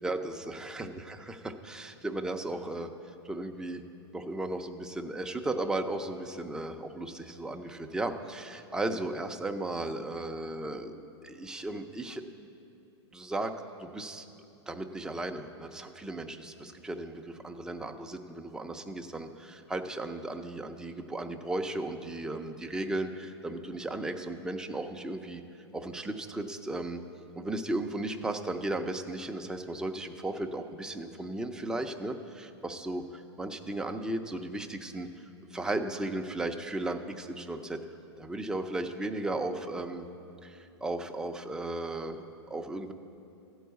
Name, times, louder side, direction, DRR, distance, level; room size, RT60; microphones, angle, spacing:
voice 1, 0.0-2.9 3.2-3.8 4.1-12.5 13.1-14.3 14.7-25.4 25.7-27.0 27.3-35.1 35.5-37.8 38.2-40.1 40.4-42.9, right 2 dB, 5° right, 4 dB, 0.5 m, -35 dB
14.0 x 4.7 x 8.1 m, 2.7 s
hypercardioid pair, 125°, 14 cm